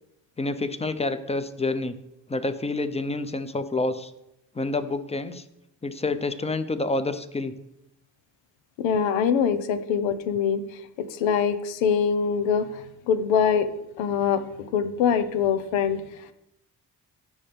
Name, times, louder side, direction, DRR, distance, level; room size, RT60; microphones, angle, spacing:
voice 1, 0.4-2.0 2.3-4.1 4.5-5.4 5.8-7.5, left 2 dB, 15° left, 11 dB, 0.8 m, -28 dB
voice 2, 8.8-13.7 14.0-14.4 14.7-16.0, left 7 dB, 85° left, 10 dB, 1.0 m, -24 dB
16.0 x 5.6 x 3.5 m, 0.84 s
cardioid pair, 80°, 44 cm